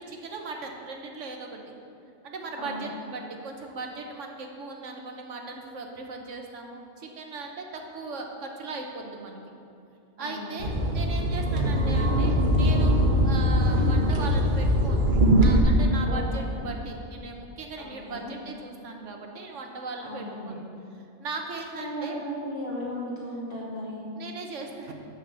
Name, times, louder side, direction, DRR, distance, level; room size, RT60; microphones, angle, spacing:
voice 1, 0.0-1.6 2.2-9.4 10.2-13.0 13.2-15.0 15.4-20.6 21.2-22.2 24.2-24.9, right 3 dB, 85° right, 2 dB, 1.3 m, -38 dB
voice 2, 2.6-2.9 10.2-10.7 16.1-16.7 17.8-18.3 20.0-20.6 21.7-24.1, equal, 80° left, -7 dB, 2.9 m, -36 dB
sound 1, 10.6-15.6, equal, 45° right, 1.1 m, -22 dB
7.9 x 6.4 x 6.8 m, 2.5 s
omnidirectional pair, 1.2 m